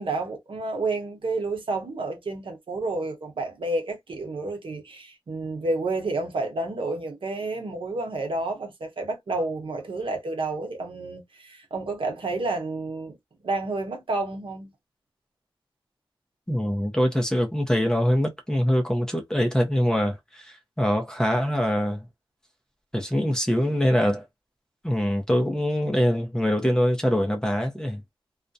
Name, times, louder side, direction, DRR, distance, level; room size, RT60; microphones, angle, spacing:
voice 1, 0.0-13.2 13.4-14.7, right 2 dB, 70° right, 0.9 m, -30 dB
voice 2, 16.5-22.1 22.9-24.2 24.8-28.0, equal, 5° left, 0.6 m, -24 dB
2.4 x 2.1 x 2.6 m
wide cardioid pair, 115°, 9 cm